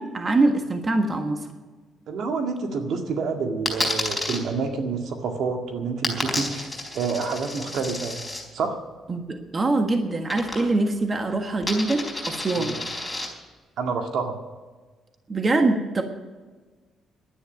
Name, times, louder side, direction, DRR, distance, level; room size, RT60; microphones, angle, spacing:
voice 1, 0.0-1.5 9.1-12.8 15.3-16.0, right 2 dB, 30° right, 5 dB, 1.5 m, -24 dB
voice 2, 2.1-8.2 8.5-8.8 12.5-12.7 13.8-14.4, right 4 dB, 70° right, 4 dB, 2.0 m, -28 dB
Coin (dropping), 3.7-4.4 6.0-8.4 10.3-10.9 11.2-13.3, left 2 dB, 10° left, 4.5 m, -30 dB
11.5 x 9.5 x 9.1 m, 1.4 s
cardioid pair, 90°, 0 cm